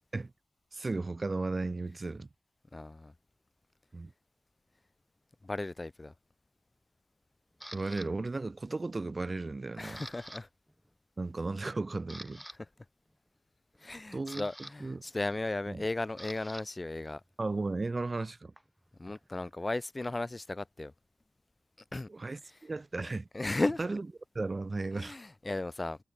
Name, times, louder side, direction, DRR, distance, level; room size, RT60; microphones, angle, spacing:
voice 1, 0.7-2.3 3.9-4.1 7.7-10.0 11.2-12.4 14.1-14.4 14.8-15.0 15.7-15.8 17.4-18.5 22.1-23.3 23.8-24.0 24.3-25.2, right 3 dB, 45° right, 1.7 m, -35 dB
voice 2, 2.7-3.1 5.4-6.1 9.8-10.5 13.8-17.2 19.0-20.9 21.9-22.1 23.0-23.8 24.9-26.0, left 2 dB, 35° left, 3.5 m, -35 dB
Camera, 7.6-8.1 8.7-9.0 9.3-10.4 10.7-10.9 11.4-11.5 11.9-12.6 13.8-16.6 16.9-19.5, equal, 5° right, 7.3 m, -49 dB
cardioid pair, 50°, 0 cm